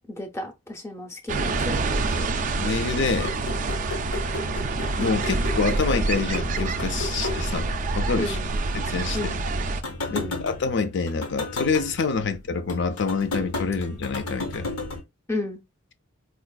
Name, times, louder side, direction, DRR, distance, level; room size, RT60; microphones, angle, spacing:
voice 1, 0.1-1.7 8.2-8.6 9.1-9.4 10.1-10.4 15.3-15.6, left 2 dB, 15° left, 0.7 m, -32 dB
sound 1, 1.3-9.8, right 3 dB, 35° right, 0.3 m, -27 dB
voice 2, 2.2-3.4 5.0-8.4 8.7-9.4 10.1-14.7, left 4 dB, 55° left, 0.4 m, -27 dB
sound 2, 3.1-8.2 8.6-8.7 9.0-15.0, left 2 dB, 90° left, 0.9 m, -34 dB
4.6 x 2.4 x 2.3 m
head